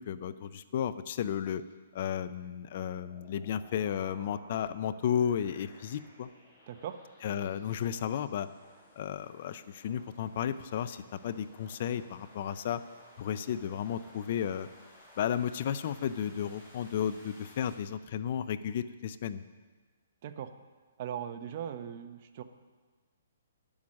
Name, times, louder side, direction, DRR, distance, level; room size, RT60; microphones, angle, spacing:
voice 1, 0.0-1.6 1.9-6.3 7.2-8.5 9.0-12.8 13.2-14.7 15.2-19.4, left 9 dB, 45° left, 14 dB, 0.5 m, -33 dB
sound 1, 3.0-17.7, left 1 dB, 10° left, 4.1 m, -58 dB
voice 2, 6.7-7.0 20.2-20.5 21.0-22.4, right 9 dB, 40° right, 9 dB, 0.7 m, -39 dB
11.0 x 8.7 x 6.3 m, 1.4 s
hypercardioid pair, 160°, 0 cm